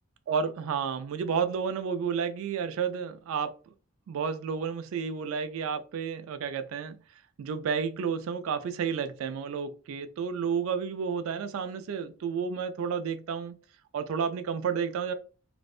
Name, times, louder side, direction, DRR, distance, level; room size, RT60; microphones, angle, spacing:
voice 1, 0.3-3.5 4.1-7.0 7.4-13.6 13.9-15.1, right 6 dB, 70° right, 0.3 m, -31 dB
2.5 x 2.1 x 2.4 m
head